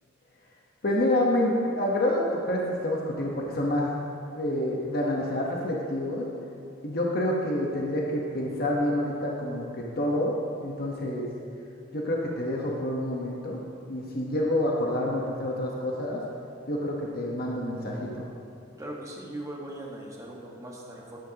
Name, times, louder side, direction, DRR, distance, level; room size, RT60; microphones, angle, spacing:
voice 1, 0.8-3.9 4.3-6.2 6.8-9.6 10.0-10.3 10.6-11.3 11.9-13.6 13.9-16.2 16.7-18.3, left 1 dB, 50° left, -2 dB, 1.1 m, -28 dB
voice 2, 18.8-21.2, right 1 dB, 15° right, -3 dB, 1.5 m, -39 dB
11.5 x 11.5 x 2.9 m, 2.5 s
head